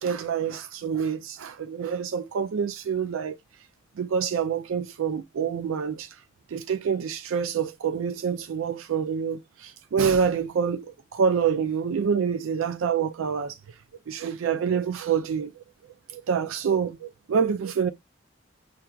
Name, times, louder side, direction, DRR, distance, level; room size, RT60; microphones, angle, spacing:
voice 1, 0.0-3.4 4.0-6.1 6.5-13.6 14.1-15.5 16.1-17.9, right 6 dB, 85° right, 0.4 m, -27 dB
5.6 x 2.5 x 2.3 m
head